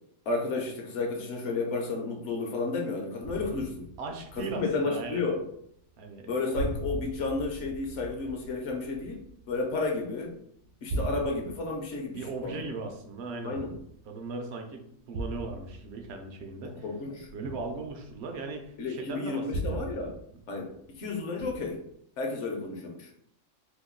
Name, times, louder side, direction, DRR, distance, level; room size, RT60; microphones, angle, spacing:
voice 1, 0.3-3.8 4.4-5.4 6.3-10.3 10.8-12.6 13.4-13.7 16.6-17.3 18.8-20.1 20.5-21.8 22.2-23.1, left 3 dB, 70° left, 2 dB, 1.0 m, -32 dB
sound 1, 3.2-5.5 5.8-6.3 6.5-10.3 10.6-14.3 15.1-18.7 19.5-21.0 21.4-21.9, right 1 dB, 90° right, 1.0 m, -39 dB
voice 2, 4.0-5.3 6.0-6.3 12.1-13.6 14.1-16.8 17.3-19.8, right 3 dB, 65° right, 4 dB, 0.8 m, -38 dB
2.9 x 2.2 x 3.6 m, 0.70 s
omnidirectional pair, 1.3 m